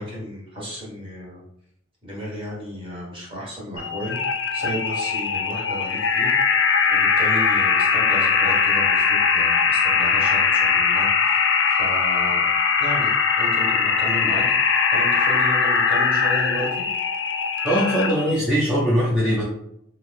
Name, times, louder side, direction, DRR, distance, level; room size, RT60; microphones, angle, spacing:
voice 1, 0.0-1.4 2.0-4.1 4.5-6.3 6.9-12.4 12.8-16.9, equal, 25° right, -6 dB, 1.0 m, -33 dB
sound 1, 3.8-18.4, left 5 dB, 65° left, 0.4 m, -20 dB
voice 2, 17.6-19.4, equal, 5° right, -10 dB, 0.6 m, -21 dB
2.6 x 2.4 x 3.3 m, 0.73 s
head